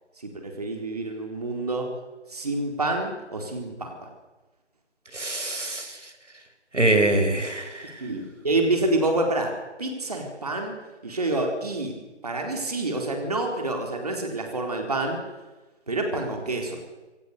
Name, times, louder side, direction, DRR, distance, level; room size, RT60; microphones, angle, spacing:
voice 1, 0.2-1.9 2.3-4.1 8.0-9.5 9.8-10.8 11.0-15.2 15.9-16.8, right 2 dB, 35° right, 2 dB, 4.1 m, -28 dB
voice 2, 5.1-6.1 6.7-8.0, right 2 dB, 85° right, 7 dB, 6.1 m, -24 dB
27.5 x 25.0 x 6.8 m, 1.2 s
figure-of-eight pair, 175°, 35 cm